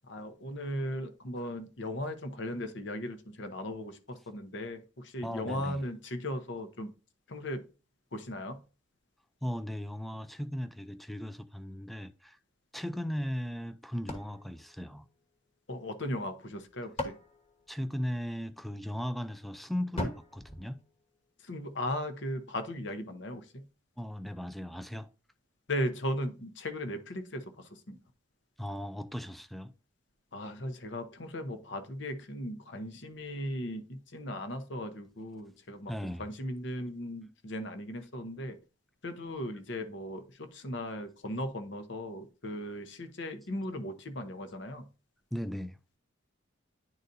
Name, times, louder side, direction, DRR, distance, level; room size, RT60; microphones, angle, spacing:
voice 1, 0.1-6.9 7.3-7.6 8.1-8.6 15.7-17.2 21.4-23.7 25.7-28.0 30.3-35.9 36.2-38.6 39.0-44.9, left 1 dB, 60° left, 0.9 m, -37 dB
voice 2, 5.2-5.8 9.4-12.4 12.7-15.1 17.7-20.8 24.0-25.1 28.6-29.7 35.9-36.3 45.3-45.8, equal, ahead, 0.3 m, -37 dB
sound 1, 14.1-15.6 16.5-18.5 20.0-21.6, left 1 dB, 30° left, 1.3 m, -41 dB
10.5 x 4.0 x 2.6 m
head